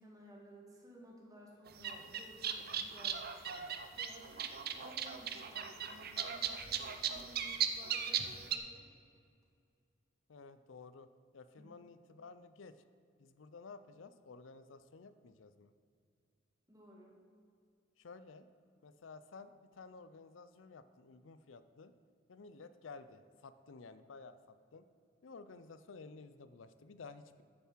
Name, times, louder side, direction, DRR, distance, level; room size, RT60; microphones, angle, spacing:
voice 1, 0.0-3.2 3.9-8.9 11.6-11.8 16.7-17.2, right 1 dB, 20° right, -2 dB, 2.2 m, -57 dB
sound 1, 1.7-8.6, right 8 dB, 55° right, 0.7 m, -38 dB
voice 2, 10.3-11.1 11.3-12.8 13.2-15.7 18.0-18.5 18.8-21.9 22.3-24.9 25.2-27.4, left 4 dB, 75° left, 13 dB, 0.5 m, -53 dB
8.9 x 7.1 x 7.4 m, 2.4 s
head